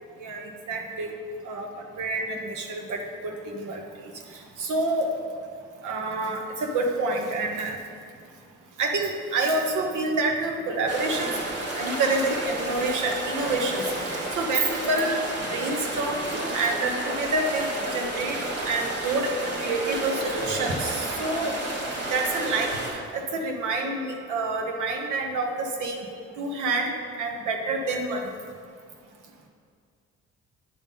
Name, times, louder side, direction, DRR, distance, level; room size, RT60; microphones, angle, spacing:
voice 1, 0.2-1.1 1.4-1.7 2.0-3.8 4.6-5.1 5.8-7.8 8.8-11.3 11.7-15.2 15.5-16.2 16.5-18.4 18.6-19.3 19.6-21.6 22.1-26.0 26.4-26.9 27.2-28.3, right 2 dB, 80° right, 2 dB, 1.1 m, -27 dB
sound 1, 10.9-22.9, right 1 dB, 50° right, 1.8 m, -31 dB
9.2 x 3.7 x 5.3 m, 2.1 s
cardioid pair, 90°, 30 cm